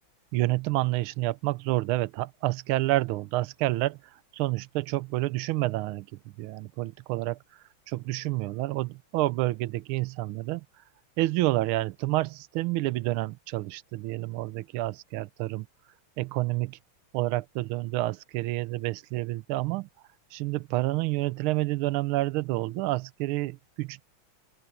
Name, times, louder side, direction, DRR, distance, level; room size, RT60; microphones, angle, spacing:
voice 1, 0.3-4.0 4.3-6.1 6.4-7.4 7.9-10.6 11.2-15.7 16.2-16.8 17.1-19.9 20.3-24.1, right 18 dB, 85° right, 1.5 m, -29 dB
open air
omnidirectional pair, 2.3 m